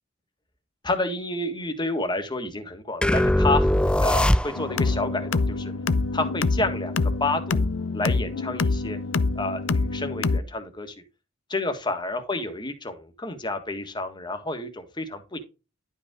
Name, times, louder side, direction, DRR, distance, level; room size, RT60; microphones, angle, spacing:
voice 1, 0.8-3.7 4.0-5.7 6.1-6.9 7.2-7.6 7.9-9.0 9.4-10.9 11.5-15.4, left 2 dB, 25° left, 6 dB, 1.7 m, -29 dB
sound 1, 3.0-4.9, left 1 dB, 5° left, 0.3 m, -21 dB
sound 2, 4.6-10.4, left 3 dB, 90° left, 0.6 m, -26 dB
11.5 x 5.5 x 3.8 m, 0.29 s
head